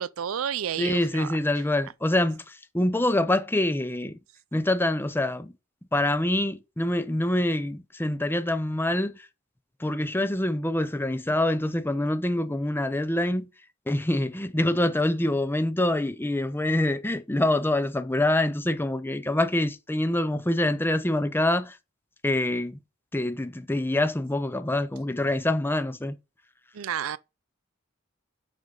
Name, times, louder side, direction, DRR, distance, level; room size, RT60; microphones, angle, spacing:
voice 1, 0.0-1.4 26.7-27.2, right 9 dB, 80° right, 0.5 m, -31 dB
voice 2, 0.8-4.2 4.5-5.5 5.9-9.2 9.8-13.5 13.9-21.8 22.2-22.8 23.1-26.2, left 1 dB, 10° left, 0.6 m, -25 dB
6.1 x 5.1 x 5.2 m
head